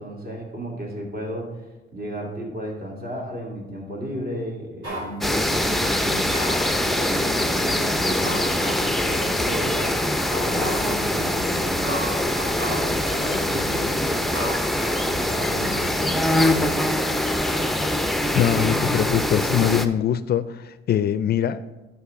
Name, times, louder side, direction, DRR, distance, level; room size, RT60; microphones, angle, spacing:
voice 1, 0.0-1.5 1.9-6.4 6.8-10.0 10.4-12.4 12.7-14.3 15.1-16.2 16.5-16.8, equal, 50° right, -1 dB, 2.6 m, -33 dB
sound 1, 4.8-5.1 6.0-7.0 7.6-7.7 8.2-9.0 9.5-9.6 10.3-11.0 11.5-11.6 11.8-13.0 13.5-13.8 14.3-15.6 15.8-15.9, right 1 dB, 75° right, 3.2 m, -33 dB
sound 2, 5.2-19.9, left 1 dB, ahead, 0.5 m, -23 dB
voice 2, 18.3-21.6, left 10 dB, 55° left, 14 dB, 0.4 m, -22 dB
11.5 x 5.1 x 3.7 m, 1.1 s
cardioid pair, 90°, 20 cm